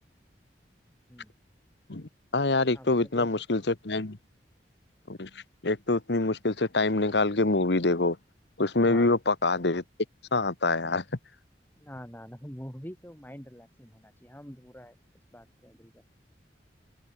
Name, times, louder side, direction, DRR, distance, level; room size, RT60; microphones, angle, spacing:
voice 1, 1.9-4.2 5.1-5.3 5.6-8.2 8.6-9.8 10.3-11.0, left 2 dB, 75° left, 1.4 m, -25 dB
voice 2, 2.7-3.3 8.8-9.1 11.8-15.0 15.3-16.0, equal, 10° left, 5.9 m, -45 dB
open air
head